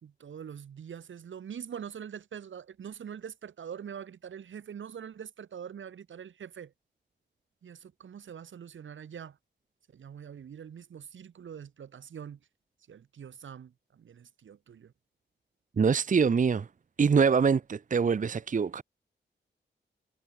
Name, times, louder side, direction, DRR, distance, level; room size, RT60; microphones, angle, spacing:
voice 1, 0.0-6.7 7.6-9.4 9.9-12.4 12.9-14.9, right 8 dB, 85° right, 3.1 m, -44 dB
voice 2, 15.8-16.7 17.0-18.8, right 6 dB, 40° right, 0.7 m, -24 dB
cardioid pair, 75°, 20 cm